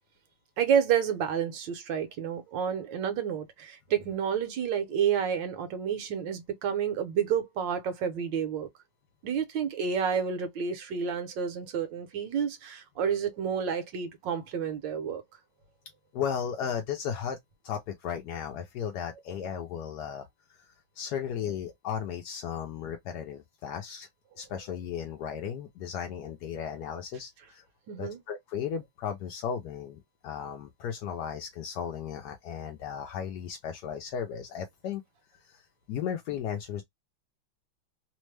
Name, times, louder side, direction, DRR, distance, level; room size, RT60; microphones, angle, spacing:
voice 1, 0.6-8.7 9.2-15.2 27.9-28.2, right 7 dB, 70° right, 1.4 m, -30 dB
voice 2, 16.1-17.4 17.6-20.3 20.6-20.7 21.0-24.1 24.4-27.6 28.0-35.0 35.4-35.6 35.9-36.8, left 8 dB, 75° left, 0.9 m, -35 dB
3.4 x 2.1 x 3.1 m
omnidirectional pair, 2.2 m